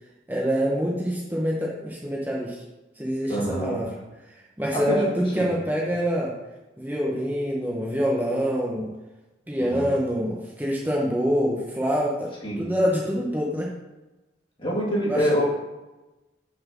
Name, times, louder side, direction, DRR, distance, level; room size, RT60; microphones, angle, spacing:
voice 1, 0.3-2.6 3.0-3.4 3.6-3.9 4.6-6.4 6.8-8.9 9.5-13.7 15.1-15.3, equal, 10° right, -4 dB, 0.9 m, -25 dB
voice 2, 3.3-3.8 4.7-5.1 5.4-5.5 9.6-9.9 12.4-12.7 14.6-15.5, equal, 30° left, -4 dB, 2.0 m, -26 dB
5.9 x 4.2 x 6.2 m, 1.1 s
head